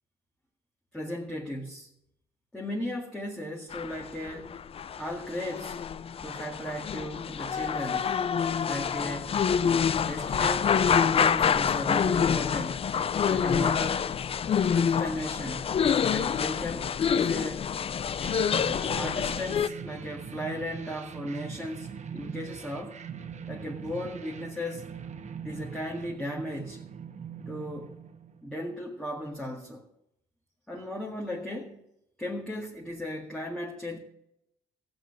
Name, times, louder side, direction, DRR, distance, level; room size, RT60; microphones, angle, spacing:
voice 1, 0.9-1.9 2.5-4.5 5.0-5.8 6.2-8.1 8.7-9.3 10.0-12.8 13.2-14.1 14.7-15.6 16.1-17.7 19.0-23.0 23.5-24.8 25.4-26.8 27.5-28.0 28.4-29.9 30.7-31.8 32.2-34.0, equal, 5° left, -3 dB, 1.9 m, -36 dB
sound 1, 3.7-19.7, left 7 dB, 35° left, 0.4 m, -27 dB
sound 2, 18.2-28.7, right 7 dB, 40° right, 1.1 m, -42 dB
15.0 x 7.9 x 6.6 m, 0.81 s
cardioid pair, 115°, 17 cm